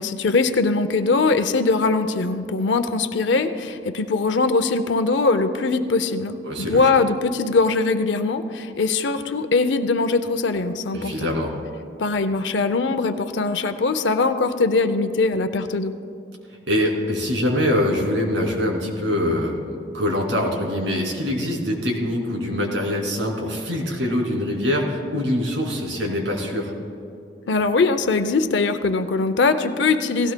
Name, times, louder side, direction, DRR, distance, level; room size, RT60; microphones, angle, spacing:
voice 1, 0.0-11.3 12.0-15.9 27.5-30.3, left 3 dB, 75° left, 10 dB, 0.6 m, -21 dB
voice 2, 6.4-6.9 10.9-11.6 16.7-26.7, left 1 dB, 85° right, 0 dB, 2.6 m, -24 dB
18.0 x 16.5 x 2.2 m, 2.6 s
head